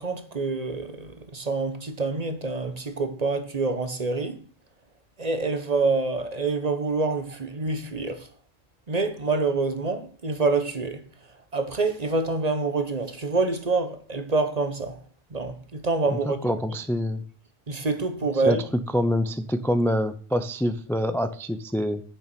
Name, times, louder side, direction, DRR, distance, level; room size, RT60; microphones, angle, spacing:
voice 1, 0.0-4.4 5.2-8.3 8.9-11.0 11.5-15.0 15.3-16.4 17.7-18.6, right 3 dB, 35° right, 1.0 m, -26 dB
voice 2, 16.1-17.2 18.3-18.6 18.9-22.0, equal, 5° left, 0.4 m, -26 dB
9.2 x 6.9 x 6.0 m
omnidirectional pair, 1.3 m